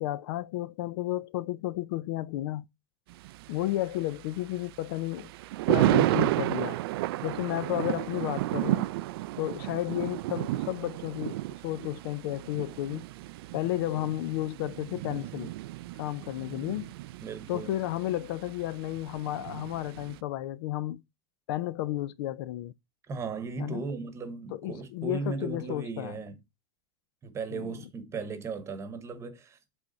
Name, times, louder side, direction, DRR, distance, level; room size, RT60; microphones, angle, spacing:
voice 1, 0.0-2.7 3.5-5.3 5.7-6.8 7.2-8.9 9.4-11.4 11.6-13.0 13.5-15.5 16.0-16.9 17.5-21.0 21.5-22.7 23.6-23.8 24.5-26.1 27.5-27.7, left 15 dB, 65° left, 0.5 m, -32 dB
Thunder, 3.1-20.2, right 17 dB, 70° right, 0.4 m, -32 dB
voice 2, 17.2-17.7 23.1-26.4 27.2-29.6, right 4 dB, 20° right, 1.1 m, -37 dB
8.1 x 3.5 x 3.9 m
supercardioid pair, 140°, 13 cm